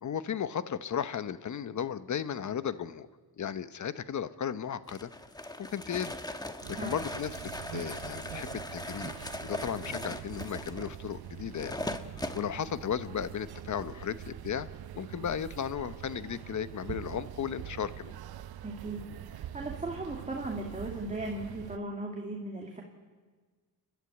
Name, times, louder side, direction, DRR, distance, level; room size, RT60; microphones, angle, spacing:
voice 1, 0.0-3.1 3.4-5.1 5.6-6.2 6.7-7.3 7.7-9.1 9.4-11.8 12.3-14.7 14.9-18.2, left 8 dB, 50° left, 13 dB, 0.9 m, -35 dB
sound 1, 4.9-12.5, left 1 dB, 10° left, 1.1 m, -40 dB
sound 2, 6.6-21.8, right 11 dB, 70° right, 0.8 m, -44 dB
voice 2, 18.6-22.8, right 2 dB, 20° right, 0 dB, 2.3 m, -37 dB
29.0 x 12.0 x 9.6 m, 1.4 s
cardioid pair, 105°, 39 cm